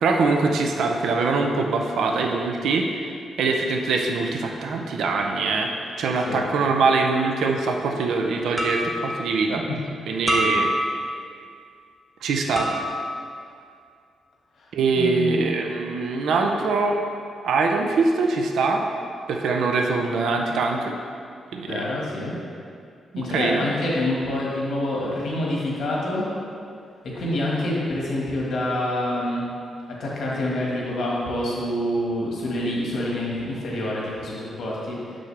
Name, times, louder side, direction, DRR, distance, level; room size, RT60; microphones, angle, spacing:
voice 1, 0.0-3.0 3.4-5.7 6.0-9.6 10.1-10.7 12.2-12.7 14.7-17.0 17.4-18.8 19.3-20.9 21.5-21.8 23.1-23.7, right 4 dB, 85° right, 2 dB, 0.5 m, -23 dB
sound 1, 7.2-7.4 8.6-9.1 10.3-11.2 12.6-13.2, equal, 5° right, 0.9 m, -26 dB
voice 2, 15.0-15.4 21.7-22.4 23.2-26.3 27.1-29.4 30.0-35.0, left 1 dB, 70° left, -4 dB, 1.5 m, -26 dB
6.1 x 6.0 x 3.3 m, 2.4 s
cardioid pair, 130°, 0 cm